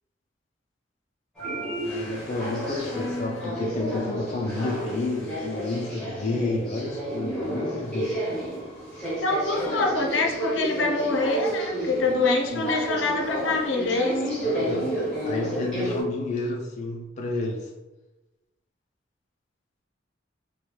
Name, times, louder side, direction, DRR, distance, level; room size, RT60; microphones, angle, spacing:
sound 1, 1.4-16.0, right 1 dB, 5° left, 1.3 m, -31 dB
voice 1, 1.8-8.2 12.5-12.7 14.4-15.0 15.2-17.7, left 2 dB, 40° left, -1 dB, 0.4 m, -30 dB
voice 2, 2.9-3.6 9.2-14.4, left 3 dB, 75° left, 1 dB, 0.6 m, -26 dB
4.3 x 2.2 x 3.2 m, 1.0 s
head